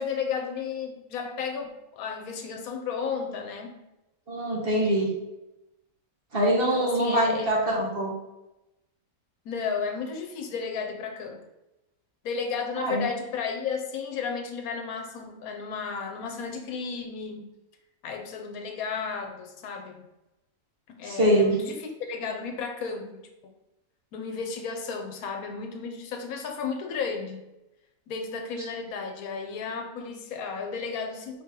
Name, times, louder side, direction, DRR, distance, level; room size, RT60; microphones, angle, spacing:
voice 1, 0.0-3.8 6.7-7.5 9.4-11.4 12.2-17.4 18.0-20.1 20.9-23.2 24.1-27.5 28.1-31.4, left 5 dB, 80° left, 4 dB, 1.1 m, -33 dB
voice 2, 4.3-5.1 6.3-8.1 12.8-13.0 21.0-21.5, right 1 dB, 45° right, -3 dB, 1.1 m, -23 dB
4.9 x 2.9 x 3.7 m, 0.95 s
omnidirectional pair, 1.5 m